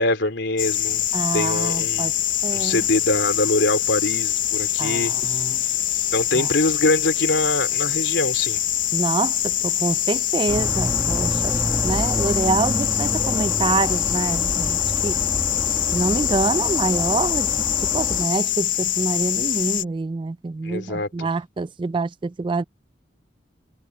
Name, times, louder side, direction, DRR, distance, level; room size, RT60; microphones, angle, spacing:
voice 1, 0.0-1.0 1.3-2.1 2.5-5.1 6.1-8.6 20.6-21.3, left 2 dB, 85° left, 3.1 m, -23 dB
sound 1, 0.6-19.8, left 12 dB, 50° left, 0.6 m, -24 dB
voice 2, 1.1-2.1 2.4-2.8 4.8-5.6 6.3-6.5 8.9-11.5 11.8-15.2 15.9-17.5 17.8-22.6, right 3 dB, 30° right, 0.3 m, -26 dB
sound 2, 10.5-18.3, equal, 15° right, 1.2 m, -29 dB
head